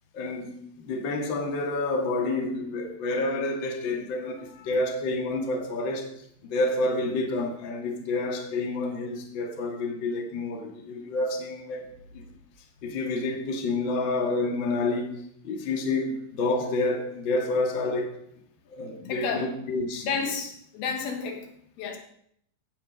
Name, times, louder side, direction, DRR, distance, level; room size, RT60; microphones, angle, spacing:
voice 1, 0.1-6.1 6.5-11.9 12.1-12.2 12.8-18.2 18.7-20.1, left 2 dB, 90° left, 1.0 m, -29 dB
voice 2, 19.1-19.5 20.0-21.4 21.8-22.0, left 5 dB, 65° left, 2.9 m, -31 dB
16.0 x 8.2 x 5.3 m
omnidirectional pair, 5.5 m